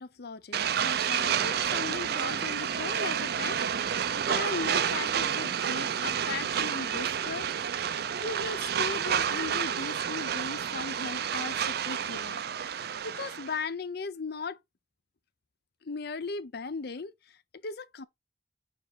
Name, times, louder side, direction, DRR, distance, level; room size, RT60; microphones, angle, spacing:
voice 1, 0.0-3.6 3.9-7.5 8.2-14.6 15.8-17.4 17.6-18.1, left 4 dB, 65° left, 0.7 m, -38 dB
sound 1, 0.5-13.6, right 8 dB, 65° right, 0.5 m, -30 dB
6.8 x 3.1 x 4.6 m
head